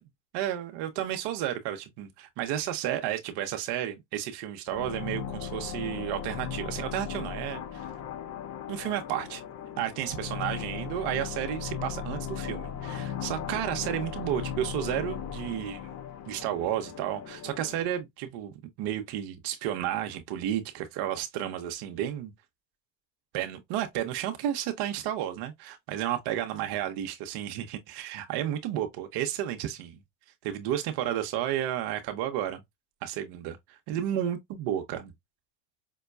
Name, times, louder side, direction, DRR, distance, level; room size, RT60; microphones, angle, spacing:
voice 1, 0.3-7.9 8.7-9.4 9.8-15.8 16.3-22.3 23.3-30.0 30.4-32.6 33.0-35.1, right 11 dB, 55° right, 0.7 m, -32 dB
sound 1, 4.7-18.0, left 8 dB, 35° left, 0.6 m, -37 dB
5.3 x 2.2 x 2.2 m
supercardioid pair, 100°, 49 cm